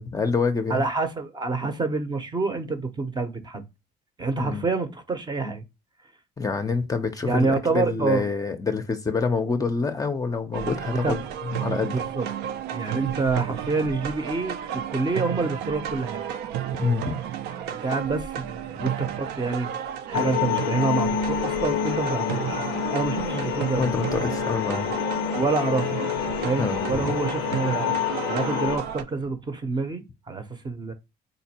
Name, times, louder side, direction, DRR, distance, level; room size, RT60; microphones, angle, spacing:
voice 1, 0.0-0.8 4.3-4.6 6.4-12.0 16.8-17.2 23.8-24.9 26.6-27.1, left 4 dB, 20° left, 0.5 m, -27 dB
voice 2, 0.7-3.6 4.2-5.6 7.2-8.3 10.8-11.1 11.9-12.3 12.7-16.2 17.7-19.7 20.1-22.6 22.9-23.9 25.3-25.9 26.4-28.0 28.3-30.9, right 3 dB, 25° right, 0.6 m, -27 dB
sound 1, 10.5-29.0, right 9 dB, 80° right, 0.4 m, -32 dB
sound 2, 20.1-28.8, left 8 dB, 90° left, 0.4 m, -28 dB
4.0 x 2.5 x 2.8 m
cardioid pair, 110°, 17 cm